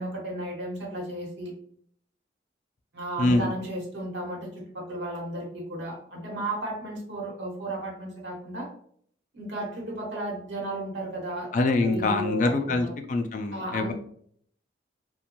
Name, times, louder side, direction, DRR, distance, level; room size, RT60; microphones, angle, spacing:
voice 1, 0.0-1.5 2.9-4.5 4.7-8.7 9.3-11.5 11.8-12.9 13.5-13.9, right 1 dB, 75° right, -2 dB, 1.0 m, -34 dB
voice 2, 3.2-3.5 11.5-13.9, left 2 dB, 45° left, 5 dB, 0.3 m, -24 dB
2.5 x 2.2 x 2.9 m, 0.63 s
head